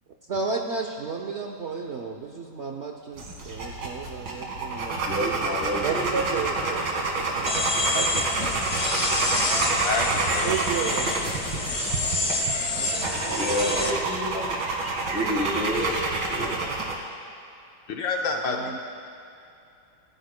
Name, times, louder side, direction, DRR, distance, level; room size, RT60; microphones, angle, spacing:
voice 1, 0.3-5.2 5.8-7.6 7.9-8.2 10.4-11.3 12.7-14.1 16.4-16.7 18.3-18.8, right 5 dB, 85° right, 2 dB, 0.6 m, -33 dB
sound 1, 3.2-16.9, right 3 dB, 65° right, 2.5 m, -28 dB
voice 2, 5.1-6.7 7.0-7.1 13.2-14.6 15.1-16.0 16.3-16.6, equal, 5° right, -6 dB, 3.2 m, -29 dB
sound 2, 7.5-13.9, left 2 dB, 30° left, 0.7 m, -28 dB
voice 3, 9.8-10.6 17.9-18.6, left 4 dB, 65° left, 1 dB, 1.5 m, -28 dB
26.0 x 16.5 x 2.2 m, 2.6 s
omnidirectional pair, 2.3 m